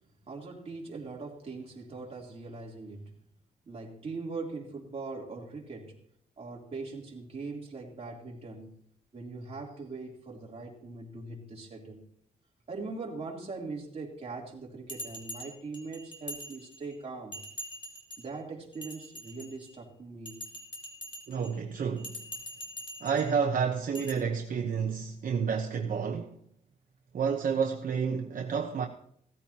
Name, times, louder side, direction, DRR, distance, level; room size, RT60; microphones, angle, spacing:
voice 1, 0.3-3.1 3.6-6.0 6.4-8.7 9.1-12.0 12.7-17.4 18.2-20.4, right 3 dB, 40° right, 3.3 m, -41 dB
Bell, 14.9-16.9 17.3-18.3 18.7-19.8 20.3-21.5 22.0-23.3 23.9-24.1, equal, 35° left, 3.1 m, -43 dB
voice 2, 21.3-22.1 23.0-26.4 27.1-28.9, right 6 dB, 65° right, 1.0 m, -30 dB
17.0 x 14.0 x 2.9 m
wide cardioid pair, 125°, 15 cm